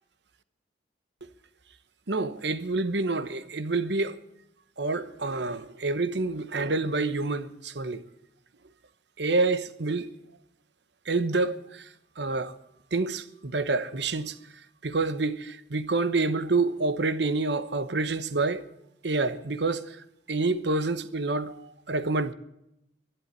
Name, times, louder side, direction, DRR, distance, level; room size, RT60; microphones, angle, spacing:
voice 1, 2.1-4.2 4.8-8.0 9.2-10.1 11.1-11.9 12.2-12.5 12.9-14.4 14.8-18.6 19.0-20.0 20.3-22.3, right 3 dB, 65° right, 1.0 m, -28 dB
11.5 x 11.0 x 9.1 m
head